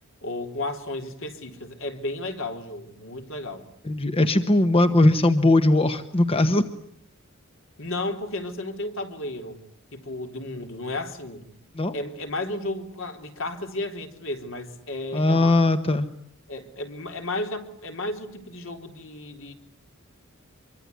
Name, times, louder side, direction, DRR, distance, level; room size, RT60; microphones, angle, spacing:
voice 1, 0.2-3.7 7.8-9.6 9.9-11.5 11.9-15.6 16.5-19.5, left 2 dB, 65° left, 5 dB, 3.6 m, -33 dB
voice 2, 3.8-6.7 11.8-11.9 15.1-16.1, left 2 dB, 25° left, 9 dB, 1.2 m, -19 dB
25.0 x 24.0 x 9.6 m, 0.71 s
head